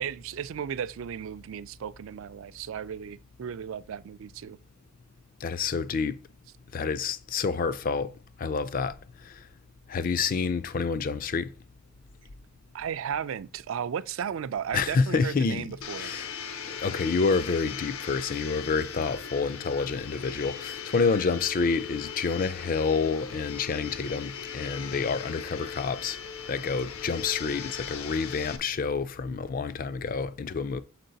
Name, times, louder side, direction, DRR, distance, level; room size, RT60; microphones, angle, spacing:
voice 1, 0.0-4.6 12.7-16.1, right 8 dB, 60° right, 0.3 m, -35 dB
voice 2, 5.4-6.2 6.7-8.1 8.4-8.9 9.9-11.5 14.7-15.7 16.0-16.3 16.7-26.2 26.5-30.8, left 5 dB, 40° left, 0.4 m, -28 dB
Domestic sounds home sounds, 15.8-28.6, left 7 dB, 70° left, 0.7 m, -39 dB
6.6 x 4.6 x 3.9 m
head